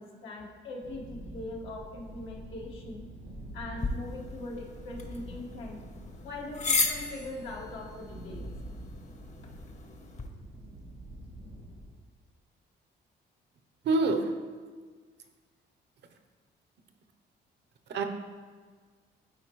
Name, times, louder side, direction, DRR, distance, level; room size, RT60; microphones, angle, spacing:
voice 1, 0.0-3.1 3.5-5.8 6.2-8.5, left 2 dB, 90° left, -3 dB, 1.5 m, -41 dB
sound 1, 0.8-11.9, right 1 dB, 90° right, 1.5 m, -46 dB
sound 2, 3.8-10.3, left 3 dB, 35° left, 0.8 m, -35 dB
voice 2, 13.8-14.3 17.9-18.0, right 3 dB, 60° right, 7 dB, 0.7 m, -25 dB
10.5 x 4.3 x 3.0 m, 1.5 s
cardioid pair, 90°, 20 cm